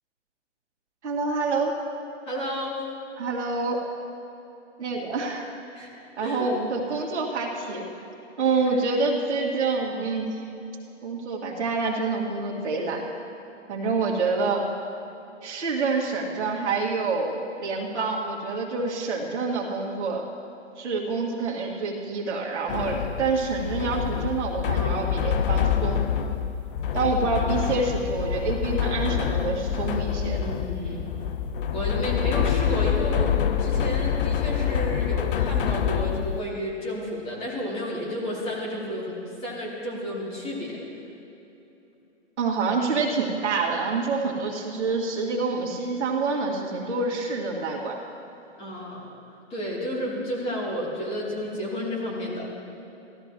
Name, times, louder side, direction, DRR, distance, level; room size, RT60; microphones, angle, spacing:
voice 1, 1.0-1.7 3.2-3.8 4.8-5.5 6.2-7.8 8.4-10.4 11.0-13.0 13.7-14.7 15.4-20.3 20.8-26.0 26.9-30.4 42.4-48.0, right 4 dB, 70° right, -2 dB, 2.0 m, -27 dB
voice 2, 2.2-2.7 5.7-5.9 6.2-6.5 8.6-8.8 24.7-25.2 30.2-31.1 31.7-33.3 33.6-40.8 48.6-49.1 49.5-52.5, equal, 15° left, -5 dB, 2.7 m, -31 dB
sound 1, 22.7-36.4, left 8 dB, 50° left, 0.5 m, -26 dB
16.0 x 13.0 x 3.0 m, 2.9 s
hypercardioid pair, 140°, 36 cm